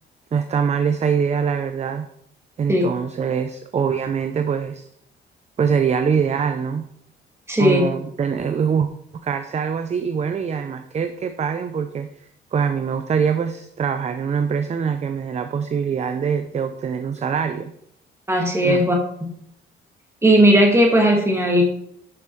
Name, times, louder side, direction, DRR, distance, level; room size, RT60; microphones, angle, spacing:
voice 1, 0.3-2.1 2.6-4.9 5.6-6.9 7.6-8.9 9.1-12.1 12.5-17.7 18.6-18.9, right 6 dB, 35° right, 8 dB, 0.5 m, -23 dB
voice 2, 7.5-7.8 18.3-19.0 19.2-19.3 20.2-21.6, equal, 15° right, 1 dB, 2.0 m, -16 dB
10.5 x 5.4 x 3.2 m, 0.72 s
cardioid pair, 90°, 20 cm